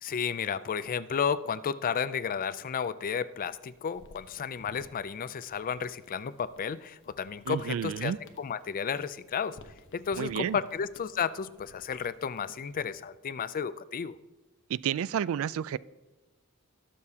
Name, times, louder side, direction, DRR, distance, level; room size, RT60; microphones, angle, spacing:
voice 1, 0.0-9.6 9.9-14.2, left 7 dB, 40° left, 15 dB, 0.4 m, -32 dB
sound 1, 3.3-13.1, left 2 dB, 60° left, 0.9 m, -58 dB
voice 2, 7.5-8.2 10.2-10.6 14.7-15.8, right 9 dB, 65° right, 20 dB, 0.3 m, -30 dB
20.5 x 6.9 x 2.8 m, 1.1 s
head